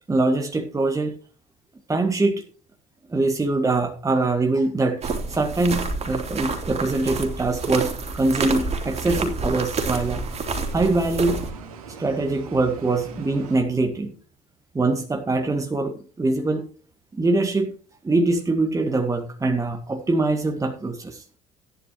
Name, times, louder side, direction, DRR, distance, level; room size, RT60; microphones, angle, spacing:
voice 1, 0.1-1.1 1.9-2.4 3.1-10.2 10.7-11.4 12.0-14.1 14.7-16.7 17.1-17.7 18.0-21.2, right 2 dB, 15° right, 5 dB, 1.6 m, -23 dB
sound 1, 5.0-11.5, right 4 dB, 35° right, 3.3 m, -29 dB
sound 2, 6.2-13.6, right 5 dB, 70° right, 2.3 m, -41 dB
14.5 x 11.0 x 3.1 m, 0.39 s
figure-of-eight pair, 60°, 19 cm